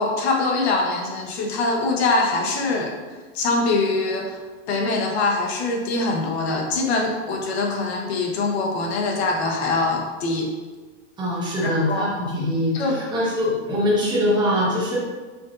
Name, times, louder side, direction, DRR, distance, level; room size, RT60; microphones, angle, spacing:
voice 1, 0.0-2.9 3.3-4.4 4.7-10.5 11.6-12.1 12.7-13.0, left 3 dB, 70° left, 1 dB, 1.0 m, -23 dB
voice 2, 11.2-15.0, left 1 dB, 15° right, -6 dB, 0.9 m, -23 dB
5.0 x 2.6 x 2.4 m, 1.3 s
supercardioid pair, 155°, 33 cm